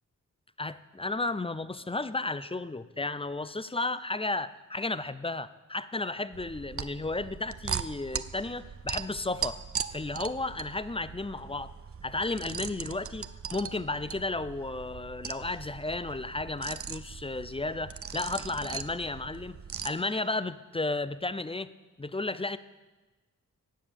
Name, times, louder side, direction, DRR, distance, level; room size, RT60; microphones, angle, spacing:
voice 1, 0.6-9.6 9.9-11.7 12.0-19.6 19.8-21.7 22.0-22.6, left 2 dB, 15° left, 15 dB, 0.5 m, -33 dB
sound 1, 6.3-19.9, right 7 dB, 45° right, 0.6 m, -39 dB
15.0 x 8.7 x 7.0 m, 1.2 s
wide cardioid pair, 85°, 32 cm